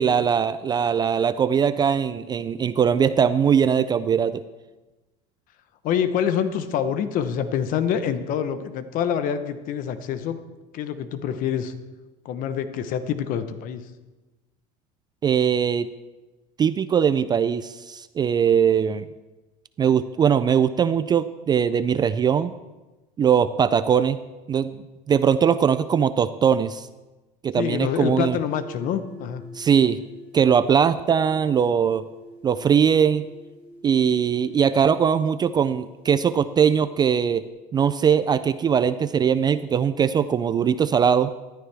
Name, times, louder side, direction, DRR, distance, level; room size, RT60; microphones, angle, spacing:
voice 1, 0.0-4.4 15.2-15.9 16.6-19.1 19.8-22.5 23.2-24.2 24.5-24.8 25.1-26.9 27.4-28.4 29.5-30.0 30.3-32.0 32.4-33.3 33.8-37.4 37.7-41.3, right 7 dB, 25° right, 13 dB, 0.4 m, -20 dB
voice 2, 5.8-10.4 10.7-11.7 12.2-13.9 27.6-29.4, left 8 dB, 55° left, 11 dB, 0.9 m, -26 dB
sound 1, 28.5-37.5, equal, 10° right, 4.9 m, -47 dB
14.0 x 12.5 x 3.4 m, 1.2 s
supercardioid pair, 125°, 17 cm